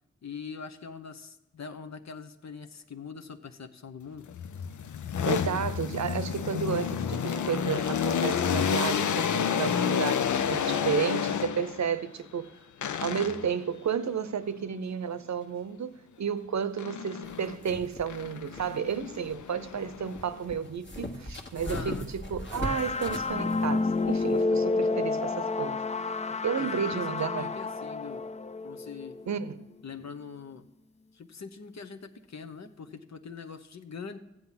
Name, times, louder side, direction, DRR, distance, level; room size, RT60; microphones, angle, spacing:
voice 1, 0.2-4.3 21.6-22.1 26.6-28.3 28.6-29.2 29.8-30.7 31.1-34.2, left 5 dB, 65° left, 1.0 m, -42 dB
sound 1, 4.3-11.9 12.8-13.6 16.8-17.6 18.1-20.4, left 8 dB, 90° left, 0.6 m, -30 dB
voice 2, 5.2-12.5 13.0-15.9 16.2-25.8 26.4-27.5 29.3-29.7, right 7 dB, 70° right, 0.7 m, -32 dB
sound 2, 17.2-24.4, left 1 dB, 40° left, 1.5 m, -41 dB
sound 3, 22.6-29.5, left 3 dB, 25° left, 0.5 m, -30 dB
14.5 x 7.9 x 5.7 m
cardioid pair, 50°, 29 cm